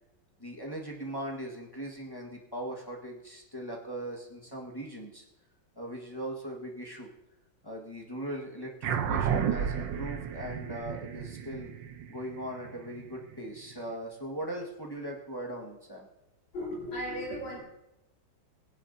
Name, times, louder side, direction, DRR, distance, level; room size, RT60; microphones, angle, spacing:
voice 1, 0.4-5.2 5.7-7.1 7.6-11.7 12.1-16.1, right 1 dB, 15° left, -2 dB, 1.4 m, -39 dB
sound 1, 8.8-13.6, right 8 dB, 75° right, 1.5 m, -32 dB
voice 2, 16.5-17.6, equal, 85° left, -4 dB, 4.5 m, -35 dB
20.5 x 10.0 x 2.7 m, 0.90 s
omnidirectional pair, 2.1 m